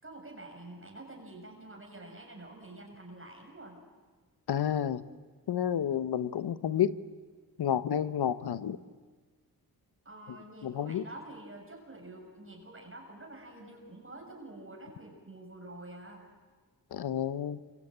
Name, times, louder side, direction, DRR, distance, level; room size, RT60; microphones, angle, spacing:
voice 1, 0.0-3.8 10.0-16.3, right 2 dB, 35° right, 1 dB, 6.1 m, -48 dB
voice 2, 4.5-5.0 5.5-7.0 7.6-8.8 10.6-11.0 16.9-17.6, left 9 dB, 85° left, 14 dB, 1.1 m, -30 dB
27.5 x 24.5 x 8.7 m, 1.4 s
cardioid pair, 75°, 38 cm